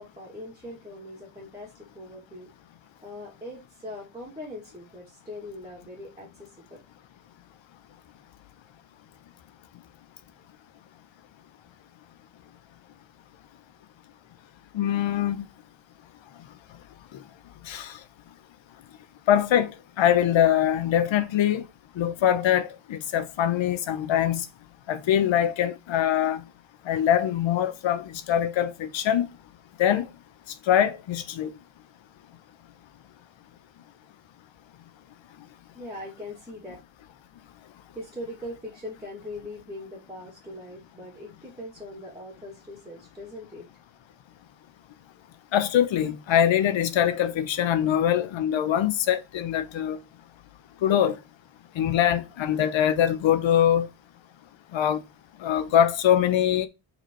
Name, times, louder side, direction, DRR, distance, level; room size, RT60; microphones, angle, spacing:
voice 1, 0.0-2.5 3.0-6.8 35.7-36.7 37.9-43.7, left 1 dB, 10° right, 2.5 m, -41 dB
voice 2, 14.7-15.5 17.7-18.0 19.3-19.7 20.0-21.6 22.0-24.5 24.9-26.4 26.9-29.3 29.8-30.0 30.7-31.5 45.5-50.0 50.8-51.2 51.8-53.9 54.7-55.0 55.4-56.7, left 10 dB, 70° left, 1.0 m, -23 dB
5.5 x 4.4 x 4.6 m
wide cardioid pair, 175°, 47 cm